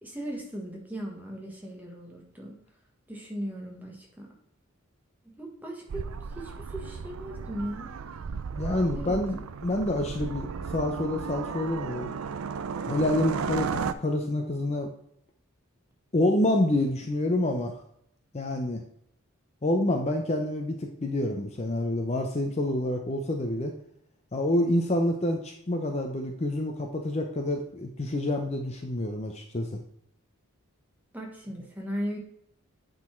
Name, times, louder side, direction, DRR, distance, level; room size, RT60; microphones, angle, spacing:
voice 1, 0.0-2.6 3.1-4.3 5.2-6.1 6.3-7.9 8.9-9.2 31.1-32.2, equal, 10° right, -1 dB, 1.3 m, -37 dB
sound 1, 5.9-13.9, right 5 dB, 80° right, 0.4 m, -34 dB
voice 2, 8.6-12.1 12.9-13.7 14.0-14.9 16.1-17.8 18.3-18.8 19.6-23.7 24.3-29.7, left 1 dB, 30° left, 3 dB, 0.6 m, -27 dB
8.5 x 3.9 x 4.4 m, 0.72 s
head